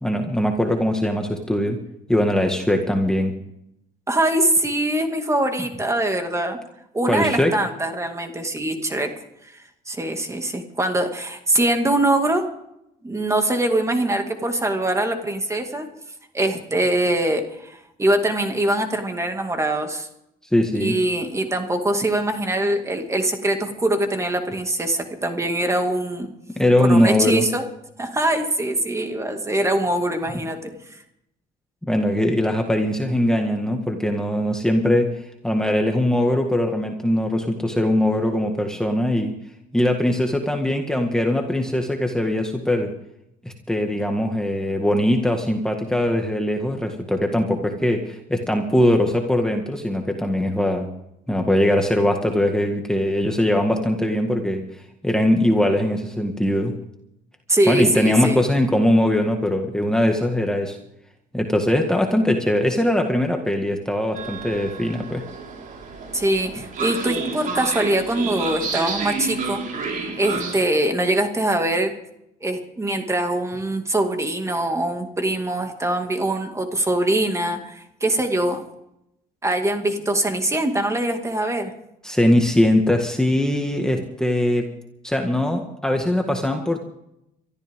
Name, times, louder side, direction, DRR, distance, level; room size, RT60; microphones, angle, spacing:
voice 1, 0.0-1.8 2.1-3.3 7.0-7.5 20.5-21.0 26.6-27.5 30.3-30.4 31.8-35.1 35.4-39.3 39.7-42.9 43.4-50.9 51.3-54.6 55.0-56.7 57.7-60.8 61.3-65.2 82.0-84.7 85.0-86.8, left 1 dB, 5° left, 2 dB, 1.9 m, -21 dB
voice 2, 4.1-6.6 6.9-9.1 9.9-12.5 13.0-15.9 16.3-20.1 20.8-26.3 26.8-27.7 28.0-30.8 57.5-58.4 66.1-69.6 70.2-71.9 72.4-78.6 79.4-81.7, right 1 dB, 15° right, 5 dB, 2.3 m, -23 dB
Train, 64.1-70.5, right 4 dB, 50° right, 4.7 m, -30 dB
23.5 x 13.5 x 3.7 m, 0.81 s
cardioid pair, 110°, 17 cm